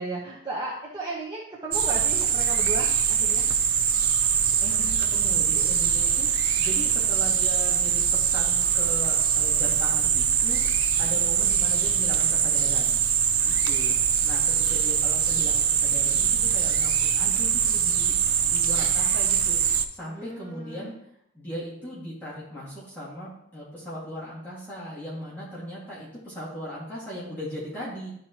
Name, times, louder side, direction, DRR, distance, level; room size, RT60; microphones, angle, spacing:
voice 1, 0.0-3.5 10.9-11.2 20.1-20.9, right 2 dB, 20° right, -6 dB, 0.9 m, -35 dB
sound 1, 1.7-19.9, right 8 dB, 90° right, 0.6 m, -23 dB
voice 2, 4.6-6.3 6.6-10.6 11.0-13.0 13.4-14.0 14.2-18.2 18.4-19.6 19.9-20.9 21.3-28.1, equal, 10° left, -9 dB, 1.9 m, -38 dB
12.0 x 4.2 x 2.9 m, 0.74 s
head